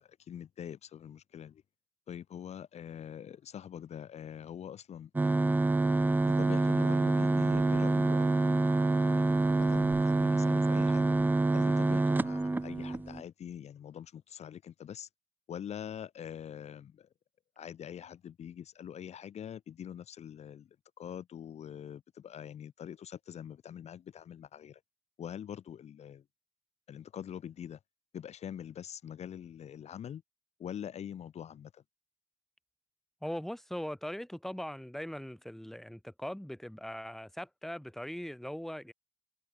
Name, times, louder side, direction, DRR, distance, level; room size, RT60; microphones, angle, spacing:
voice 1, 0.0-1.6 2.1-5.4 6.2-8.4 9.2-11.1 11.5-15.1 15.5-17.1 17.6-24.8 25.2-26.2 26.9-27.8 28.1-30.2 30.6-31.8, left 9 dB, 65° left, 1.7 m, -44 dB
sound 1, 5.2-13.2, right 2 dB, 15° right, 0.5 m, -27 dB
voice 2, 33.2-38.9, equal, 5° left, 1.7 m, -40 dB
supercardioid pair, 50°, 12 cm